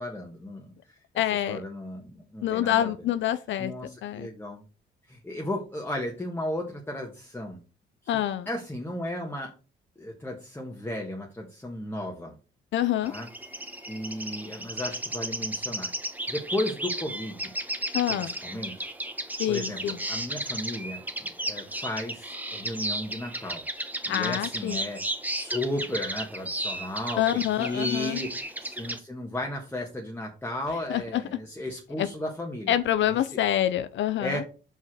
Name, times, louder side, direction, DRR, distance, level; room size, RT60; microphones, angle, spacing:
voice 1, 0.0-1.0 1.5-2.9 3.6-4.6 5.1-7.6 8.1-9.5 10.0-12.3 13.0-13.3 13.5-15.9 16.3-17.5 18.1-18.7 19.5-23.6 24.1-25.0 25.3-33.4 34.2-34.5, left 1 dB, 10° left, 1.5 m, -35 dB
voice 2, 1.2-1.6 2.4-3.7 4.0-4.3 8.1-8.5 12.7-13.1 17.9-18.3 19.4-20.0 24.1-24.9 27.2-28.2 30.9-31.2 32.0-32.1 32.7-34.4, left 12 dB, 70° left, 0.6 m, -26 dB
sound 1, 13.1-29.0, right 1 dB, 10° right, 1.2 m, -34 dB
5.4 x 5.0 x 6.2 m
cardioid pair, 90°, 20 cm